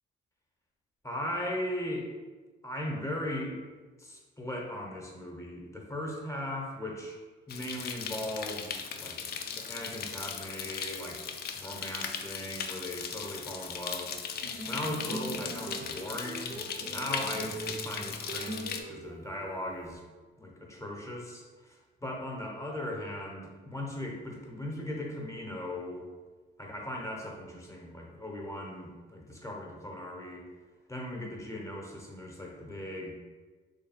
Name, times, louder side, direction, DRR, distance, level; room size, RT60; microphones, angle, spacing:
voice 1, 1.0-2.1 2.6-3.6 4.0-7.2 7.5-9.2 9.5-11.2 11.6-14.1 14.7-16.6 16.9-20.0 20.4-26.1 26.6-30.4 30.9-33.2, left 1 dB, 15° left, -1 dB, 0.8 m, -38 dB
sound 1, 7.5-18.8, left 6 dB, 55° left, 0.4 m, -38 dB
sound 2, 14.4-19.9, right 2 dB, 45° right, 0.5 m, -42 dB
3.2 x 2.2 x 4.2 m, 1.3 s
cardioid pair, 90°, 20 cm